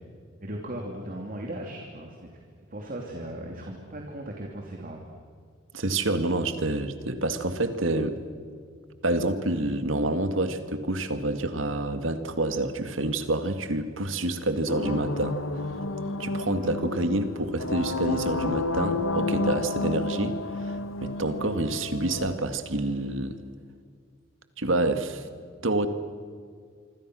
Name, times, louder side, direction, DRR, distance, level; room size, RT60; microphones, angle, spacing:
voice 1, 0.4-2.3 2.7-5.1, right 1 dB, 45° right, 1 dB, 2.9 m, -37 dB
voice 2, 5.7-8.2 9.0-15.4 16.2-23.4 24.6-25.3 25.6-25.9, right 2 dB, 75° right, 9 dB, 2.0 m, -28 dB
sound 1, 14.7-22.3, left 2 dB, 85° left, 1.5 m, -31 dB
26.0 x 25.5 x 6.4 m, 2.1 s
head